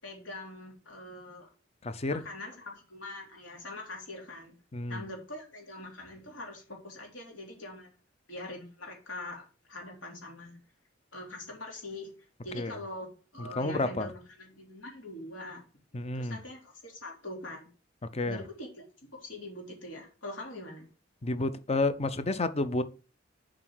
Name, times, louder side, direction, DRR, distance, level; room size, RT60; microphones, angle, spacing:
voice 1, 0.0-1.5 2.1-4.5 4.9-8.0 8.3-10.6 11.1-12.1 12.4-13.1 13.3-15.6 16.1-17.7 18.2-18.9 19.1-20.9, left 1 dB, 80° left, 3.4 m, -43 dB
voice 2, 1.8-2.2 4.7-5.0 12.5-12.8 13.4-14.1 15.9-16.4 18.1-18.4 21.2-22.8, left 2 dB, 35° left, 0.6 m, -30 dB
7.6 x 5.2 x 4.7 m
head